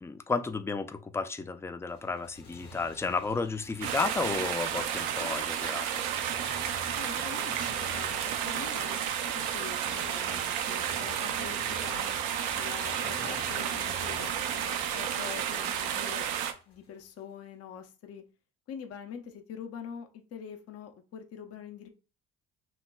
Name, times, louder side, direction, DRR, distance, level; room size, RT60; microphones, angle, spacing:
voice 1, 0.0-5.9, left 4 dB, 10° left, 0.4 m, -32 dB
Motorcycle, 1.9-17.0, left 2 dB, 80° left, 1.3 m, -49 dB
sound 1, 3.8-16.5, right 9 dB, 70° right, 0.6 m, -32 dB
voice 2, 7.0-9.0 9.3-12.2 12.5-16.2 16.7-18.2 18.7-21.9, left 8 dB, 55° left, 0.8 m, -44 dB
4.5 x 3.0 x 2.2 m
hypercardioid pair, 55°, 30 cm